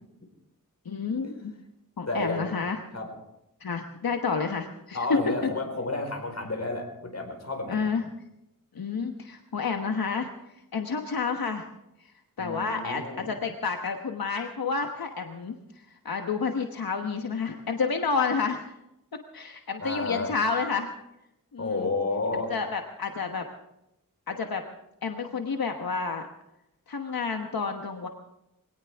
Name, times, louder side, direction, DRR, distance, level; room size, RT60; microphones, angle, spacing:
voice 1, 0.8-1.5 2.0-2.8 3.6-5.0 7.7-8.1 8.7-10.3 10.7-11.7 12.4-15.6 15.9-18.7 19.3-20.9 21.5-21.9 22.3-23.5 24.3-24.6 25.0-26.3 26.9-28.1, left 5 dB, 85° left, 4 dB, 1.2 m, -30 dB
voice 2, 2.1-2.5 2.9-3.1 4.9-7.9 12.4-13.3 19.8-20.3 21.6-22.5, left 2 dB, 50° left, 3 dB, 4.4 m, -31 dB
23.0 x 18.0 x 3.5 m, 0.85 s
wide cardioid pair, 85°, 35 cm